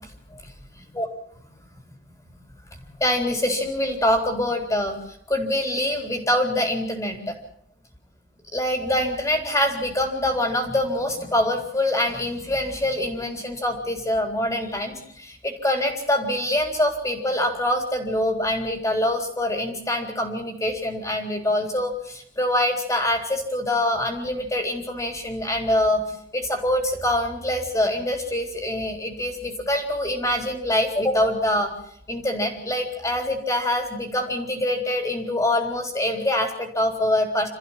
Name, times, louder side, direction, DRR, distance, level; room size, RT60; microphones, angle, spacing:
voice 1, 0.4-1.1 2.7-5.0 5.3-7.3 8.5-26.0 26.3-31.7 32.1-37.5, left 1 dB, 20° left, 4 dB, 3.9 m, -24 dB
28.0 x 15.0 x 7.4 m, 0.68 s
head